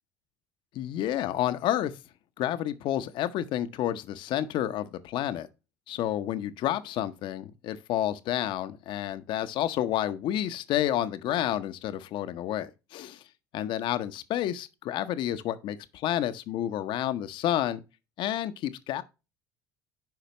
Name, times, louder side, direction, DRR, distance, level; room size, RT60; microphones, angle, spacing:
voice 1, 0.7-1.9 2.4-5.5 5.9-13.2 13.5-15.8 16.0-17.8 18.2-19.0, left 12 dB, 50° left, 0.7 m, -30 dB
10.5 x 5.0 x 3.0 m
figure-of-eight pair, 65°, 10 cm